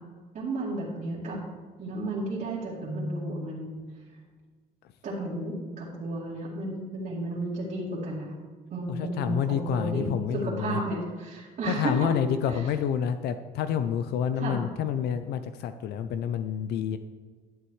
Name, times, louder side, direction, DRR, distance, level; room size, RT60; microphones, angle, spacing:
voice 1, 0.3-1.4 1.8-3.7 5.0-8.4 8.7-12.1 12.5-12.6 14.4-14.6, right 2 dB, 50° right, -8 dB, 2.5 m, -33 dB
voice 2, 8.9-10.8 11.7-17.0, left 8 dB, 75° left, 10 dB, 0.5 m, -28 dB
11.5 x 7.7 x 3.2 m, 1.5 s
cardioid pair, 110°, 17 cm